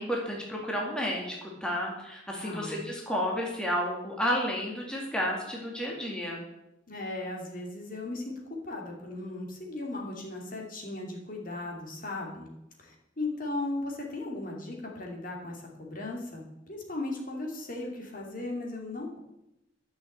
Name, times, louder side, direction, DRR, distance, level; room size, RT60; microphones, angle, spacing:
voice 1, 0.0-6.5, equal, 5° left, -2 dB, 2.1 m, -31 dB
voice 2, 2.4-2.8 6.9-12.5 12.8-19.2, left 2 dB, 45° left, 0 dB, 2.7 m, -37 dB
12.5 x 6.4 x 7.9 m, 0.88 s
head